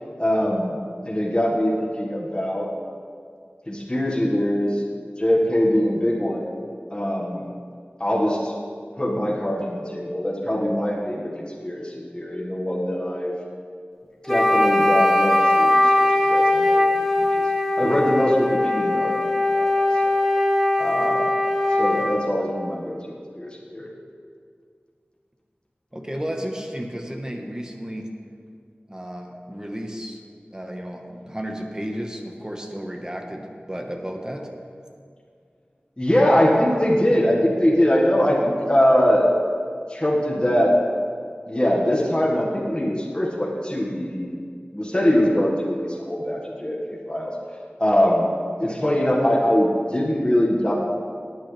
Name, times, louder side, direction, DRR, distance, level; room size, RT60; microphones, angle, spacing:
voice 1, 0.2-0.8 1.0-2.7 3.7-4.8 5.2-6.5 6.9-7.4 8.0-8.5 9.0-13.3 14.3-16.9 17.2-17.5 17.8-19.2 19.5-19.7 20.8-21.3 21.7-23.0 23.4-23.9 36.0-39.3 39.9-40.8 41.5-44.3 44.7-47.3 47.8-48.3 48.6-50.7, equal, 25° left, -4 dB, 1.7 m, -22 dB
Wind instrument woodwind instrument, 14.3-22.3, left 1 dB, 5° left, 1.4 m, -20 dB
voice 2, 25.9-28.2 28.9-30.2 30.5-34.5, equal, 20° right, 2 dB, 1.4 m, -33 dB
18.5 x 9.0 x 3.4 m, 2.2 s
wide cardioid pair, 55°, 4 cm